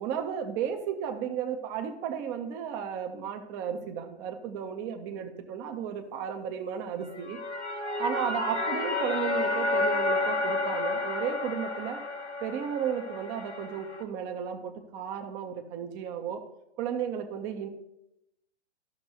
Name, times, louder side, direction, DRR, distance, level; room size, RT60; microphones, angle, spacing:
voice 1, 0.0-7.4 8.0-12.0 12.4-16.4 16.8-17.7, right 8 dB, 10° right, 6 dB, 0.4 m, -34 dB
sound 1, 7.1-14.0, left 2 dB, 80° left, 1.0 m, -31 dB
14.5 x 5.9 x 2.7 m, 0.85 s
figure-of-eight pair, 115°, 34 cm